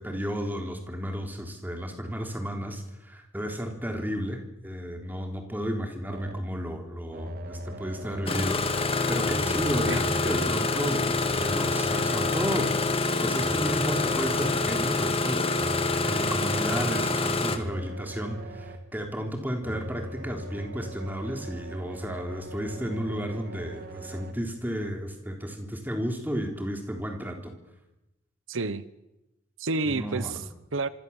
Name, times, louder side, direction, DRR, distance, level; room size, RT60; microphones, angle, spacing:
voice 1, 0.0-15.5 16.1-27.5 29.9-30.4, equal, 10° right, 4 dB, 3.6 m, -33 dB
sound 1, 6.1-6.6 7.1-8.6 9.2-10.7 11.3-12.8 13.4-14.8 15.6-17.1 17.6-19.0 19.6-24.3, equal, 50° right, 2.1 m, -39 dB
Engine starting, 8.3-17.6, left 3 dB, 30° left, 1.9 m, -26 dB
voice 2, 28.5-28.8 29.6-30.9, right 3 dB, 80° right, 15 dB, 1.1 m, -30 dB
26.5 x 24.5 x 7.3 m, 0.94 s
head